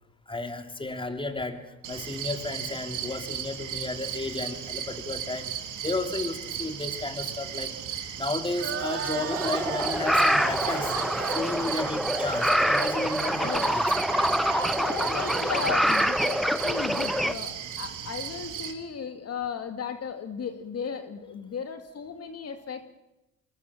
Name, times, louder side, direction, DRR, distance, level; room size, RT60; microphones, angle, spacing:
voice 1, 0.3-10.9 11.2-13.9, left 2 dB, 15° left, 6 dB, 3.3 m, -33 dB
sound 1, 1.8-18.7, right 9 dB, 80° right, 3.8 m, -36 dB
sound 2, 8.6-17.3, right 6 dB, 50° right, 3.3 m, -37 dB
sound 3, 9.3-17.3, equal, ahead, 1.1 m, -26 dB
voice 2, 14.8-22.8, left 6 dB, 55° left, 7 dB, 2.4 m, -35 dB
26.5 x 21.0 x 7.4 m, 0.95 s
cardioid pair, 90°, 30 cm